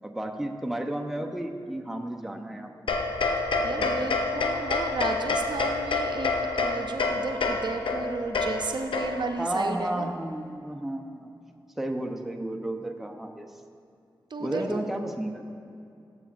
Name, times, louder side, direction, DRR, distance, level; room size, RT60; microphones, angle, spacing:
voice 1, 0.0-2.7 3.8-3.9 9.4-11.3 11.8-13.5 14.4-15.4, right 1 dB, 5° right, 3 dB, 0.7 m, -32 dB
sound 1, 2.9-9.4, left 3 dB, 80° left, 0.6 m, -28 dB
voice 2, 3.6-10.1 14.3-14.9, right 3 dB, 60° right, 5 dB, 0.6 m, -33 dB
13.0 x 7.0 x 2.5 m, 2.5 s
cardioid pair, 50°, 8 cm